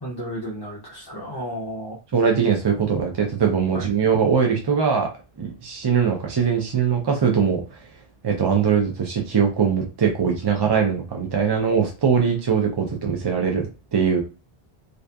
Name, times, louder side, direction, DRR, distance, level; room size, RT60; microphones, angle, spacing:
voice 1, 0.0-2.0 3.7-3.9, equal, 30° left, -4 dB, 0.4 m, -33 dB
voice 2, 2.1-5.1 5.4-7.8 8.2-13.7 13.9-14.2, right 6 dB, 45° right, 1 dB, 0.3 m, -21 dB
2.6 x 2.3 x 2.2 m, 0.31 s
omnidirectional pair, 1.1 m